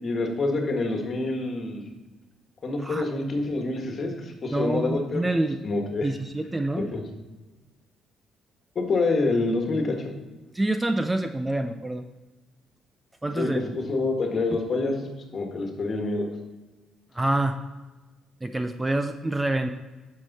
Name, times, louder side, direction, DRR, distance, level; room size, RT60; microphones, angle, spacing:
voice 1, 0.0-1.8 2.6-5.3 5.6-6.1 6.9-7.0 8.7-10.1 13.4-15.1 15.3-16.3, left 3 dB, 40° left, 3 dB, 1.6 m, -27 dB
voice 2, 4.5-5.6 6.0-6.9 10.5-12.0 13.2-13.6 17.1-17.6 18.4-19.7, right 2 dB, 10° right, 8 dB, 0.5 m, -26 dB
9.5 x 6.6 x 4.1 m, 1.2 s
cardioid pair, 115°, 0 cm